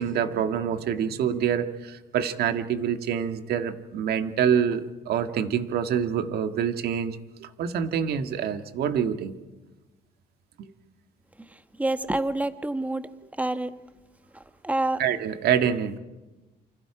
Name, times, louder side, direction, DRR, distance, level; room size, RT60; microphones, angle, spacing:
voice 1, 0.0-9.3 10.6-10.7 15.0-16.0, right 8 dB, 70° right, 8 dB, 1.7 m, -26 dB
voice 2, 11.8-13.0 13.4-13.7 14.6-15.0, right 2 dB, 10° right, 10 dB, 1.3 m, -26 dB
28.5 x 25.5 x 5.0 m, 1.1 s
cardioid pair, 110°, 17 cm